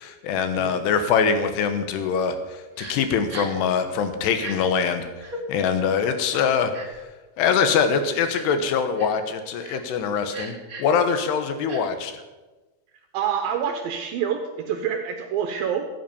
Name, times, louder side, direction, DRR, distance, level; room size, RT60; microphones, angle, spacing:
voice 1, 0.0-2.4 2.8-5.1 5.5-6.7 7.4-12.1, left 6 dB, 90° left, 8 dB, 3.3 m, -23 dB
Crying sobbing, 2.8-2.9 3.3-3.6 4.3-4.6 5.2-5.4 6.3-7.0 7.6-7.7 8.3-8.6 9.0-9.2 9.6-9.8 10.3-10.9 11.7-11.8, right 3 dB, 35° right, 1.4 m, -37 dB
voice 2, 13.1-15.9, right 8 dB, 70° right, 5 dB, 2.5 m, -27 dB
14.5 x 8.6 x 6.9 m, 1.2 s
omnidirectional pair, 4.7 m